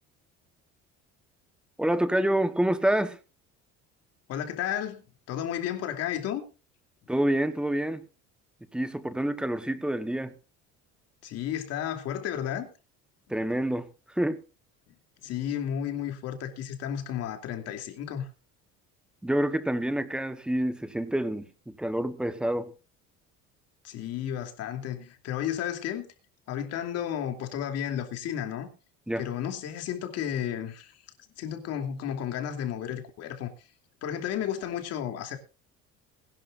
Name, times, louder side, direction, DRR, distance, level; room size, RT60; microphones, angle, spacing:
voice 1, 1.8-3.2 7.1-8.0 8.7-10.3 13.3-14.4 19.2-22.7 29.1-29.3, right 1 dB, 5° right, 1.0 m, -27 dB
voice 2, 4.3-6.4 11.2-12.7 15.2-18.3 23.8-26.1 26.5-28.7 29.2-31.0 31.4-33.5 34.0-35.4, left 10 dB, 55° left, 2.9 m, -33 dB
21.5 x 12.0 x 2.5 m
cardioid pair, 175°, 29 cm